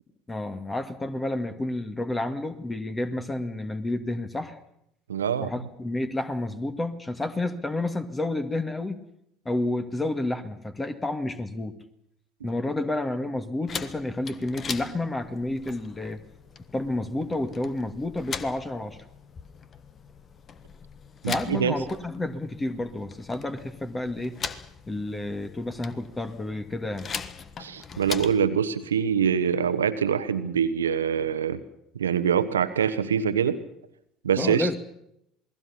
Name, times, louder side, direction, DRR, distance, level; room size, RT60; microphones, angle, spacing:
voice 1, 0.3-4.6 5.4-9.0 9.5-11.7 12.4-16.2 16.7-19.0 21.2-24.4 24.9-27.1 34.4-34.8, left 2 dB, 15° left, 9 dB, 2.0 m, -30 dB
voice 2, 5.1-5.5 21.2-21.7 27.6-31.6 31.9-33.6 34.2-34.7, right 7 dB, 75° right, 13 dB, 1.2 m, -24 dB
sound 1, 13.7-28.5, left 6 dB, 35° left, 1.4 m, -40 dB
28.0 x 20.0 x 5.8 m, 0.78 s
figure-of-eight pair, 60°, 0 cm